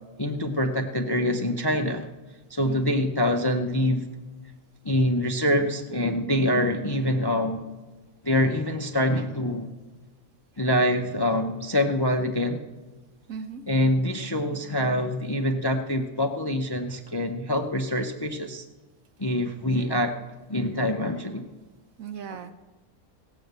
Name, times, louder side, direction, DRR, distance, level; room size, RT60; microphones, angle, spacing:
voice 1, 0.2-2.1 2.5-4.1 4.8-7.6 8.2-9.7 10.6-12.6 13.7-18.6 19.2-20.2 20.5-21.5, left 1 dB, 35° left, 5 dB, 0.4 m, -25 dB
voice 2, 2.6-2.9 13.3-13.6 22.0-22.5, right 6 dB, 70° right, 10 dB, 1.1 m, -37 dB
16.5 x 7.0 x 8.0 m, 1.2 s
omnidirectional pair, 1.5 m